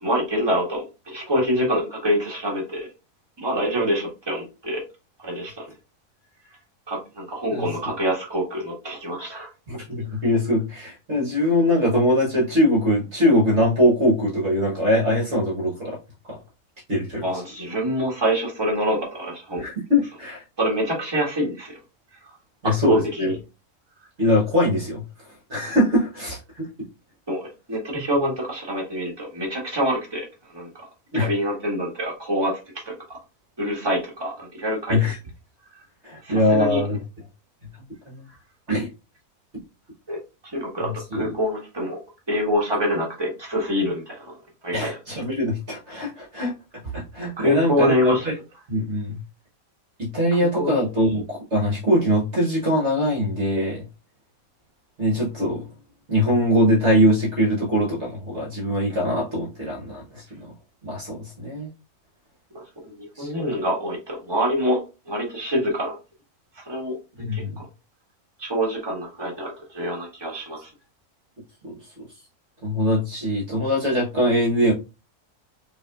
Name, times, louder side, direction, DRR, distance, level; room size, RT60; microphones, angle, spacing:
voice 1, 0.0-2.8 3.4-4.8 5.2-5.5 6.9-9.5 17.2-19.6 20.6-21.7 22.6-23.3 27.3-30.2 30.5-30.7 31.1-32.5 32.8-32.9 33.6-35.0 36.3-36.8 40.1-40.2 40.5-42.0 42.3-44.2 44.6-44.7 47.4-48.3 50.6-50.7 62.8-64.8 65.1-65.9 66.7-66.9 67.3-67.4 68.4-70.6, equal, 15° right, -3 dB, 1.6 m, -25 dB
voice 2, 9.7-16.0 16.3-16.4 16.9-17.4 19.6-20.4 22.6-23.3 24.2-25.0 25.5-26.7 31.1-31.3 34.9-35.2 36.0-37.0 38.1-38.2 38.7-38.9 40.8-41.4 44.7-46.5 46.8-48.3 48.7-49.2 50.0-53.8 55.0-55.7 56.1-60.5 60.8-61.7 63.1-63.3 67.2-67.6 71.6-72.1 72.6-74.7, left 1 dB, 50° right, -3 dB, 1.4 m, -22 dB
5.5 x 2.9 x 2.4 m, 0.29 s
omnidirectional pair, 1.6 m